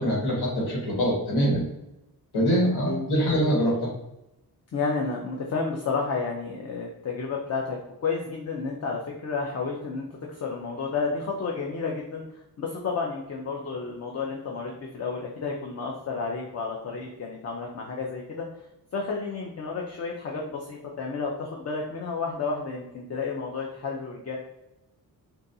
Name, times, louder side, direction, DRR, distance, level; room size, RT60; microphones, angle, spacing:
voice 1, 0.0-1.6 2.3-3.9, equal, 85° left, -4 dB, 1.5 m, -24 dB
voice 2, 4.7-18.4 18.9-24.4, left 4 dB, 40° left, -1 dB, 0.5 m, -31 dB
3.9 x 2.3 x 2.6 m, 0.90 s
wide cardioid pair, 150°, 38 cm